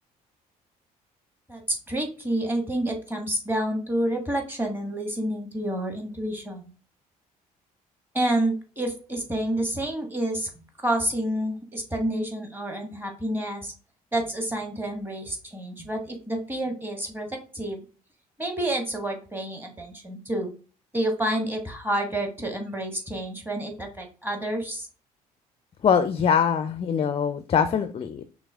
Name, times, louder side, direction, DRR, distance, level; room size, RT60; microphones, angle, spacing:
voice 1, 1.5-6.7 8.1-13.7 14.1-17.8 18.4-20.5 20.9-24.9, right 1 dB, 10° right, 3 dB, 1.3 m, -29 dB
voice 2, 25.8-28.2, left 7 dB, 30° left, 10 dB, 0.4 m, -23 dB
5.8 x 2.0 x 3.4 m, 0.37 s
figure-of-eight pair, 50°, 20 cm